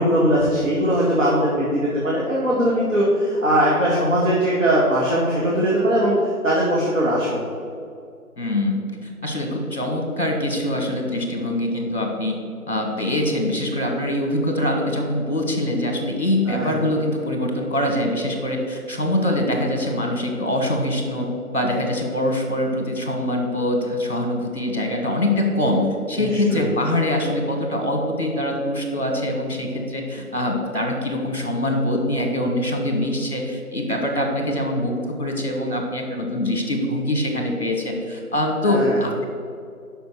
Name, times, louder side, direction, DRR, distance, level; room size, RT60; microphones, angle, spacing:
voice 1, 0.0-6.1 6.4-7.4 16.5-16.8 26.2-26.7 38.6-39.0, equal, 55° right, -5 dB, 1.8 m, -20 dB
voice 2, 8.4-12.4 12.7-21.3 21.5-39.2, left 1 dB, 45° left, 2 dB, 1.8 m, -23 dB
7.0 x 5.9 x 6.2 m, 2.4 s
figure-of-eight pair, 175°, 45 cm